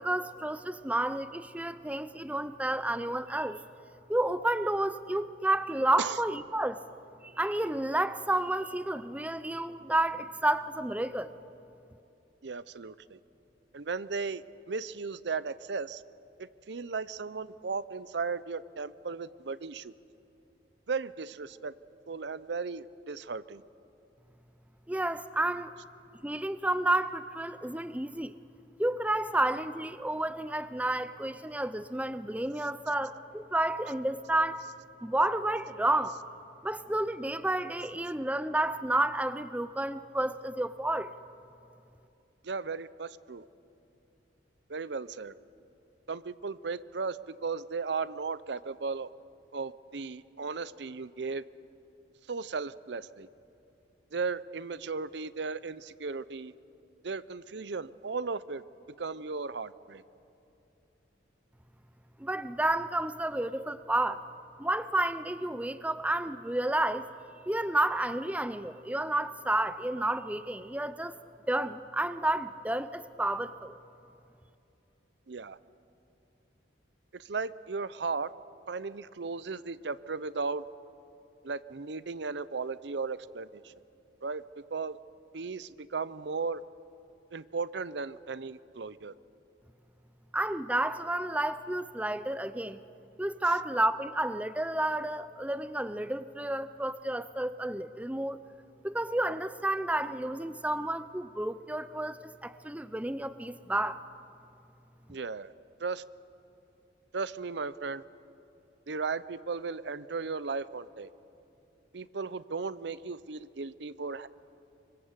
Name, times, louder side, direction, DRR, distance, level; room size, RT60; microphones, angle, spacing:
voice 1, 0.0-3.6 4.1-6.8 7.2-11.3 24.9-25.7 26.2-28.3 28.8-34.6 35.0-36.2 36.6-41.1 62.2-64.3 64.6-67.1 67.5-71.1 71.5-73.8 90.3-92.8 93.2-98.4 98.8-104.0, right 1 dB, 10° right, 12 dB, 0.6 m, -30 dB
voice 2, 12.4-13.2 13.7-16.0 16.4-19.9 20.9-21.7 22.1-23.6 42.4-43.4 44.7-45.3 46.1-49.1 49.5-51.4 52.3-53.3 54.1-56.5 57.0-58.6 59.0-60.0 75.3-75.6 77.1-78.3 78.7-80.6 81.4-83.7 84.2-84.4 84.7-85.0 85.3-86.6 87.3-89.1 105.1-105.5 105.8-106.0 107.1-108.0 108.9-111.1 111.9-114.3, right 4 dB, 70° right, 16 dB, 0.6 m, -36 dB
24.5 x 24.5 x 8.1 m, 2.7 s
head